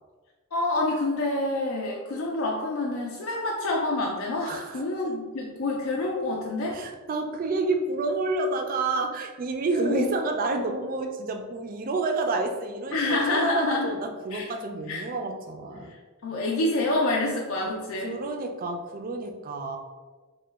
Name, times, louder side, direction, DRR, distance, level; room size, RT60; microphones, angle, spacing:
voice 1, 0.5-6.8 9.7-10.1 12.9-13.9 14.3-14.5 14.9-15.0 15.9-16.0 16.2-18.2, left 2 dB, 70° left, -2 dB, 0.4 m, -27 dB
voice 2, 4.5-4.8 6.7-15.9 17.6-17.7 18.0-19.8, right 3 dB, 40° right, 4 dB, 0.3 m, -29 dB
3.0 x 2.1 x 3.3 m, 1.3 s
head